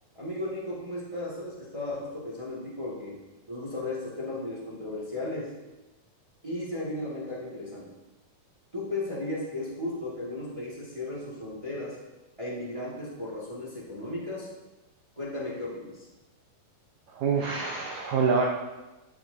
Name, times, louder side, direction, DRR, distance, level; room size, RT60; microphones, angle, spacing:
voice 1, 0.1-3.2 3.5-5.5 6.4-7.9 8.7-12.0 12.4-14.5 15.1-16.1, left 2 dB, 20° right, -7 dB, 1.0 m, -35 dB
voice 2, 17.1-18.4, right 5 dB, 90° right, 0 dB, 1.5 m, -26 dB
13.0 x 7.8 x 2.8 m, 1.1 s
omnidirectional pair, 4.4 m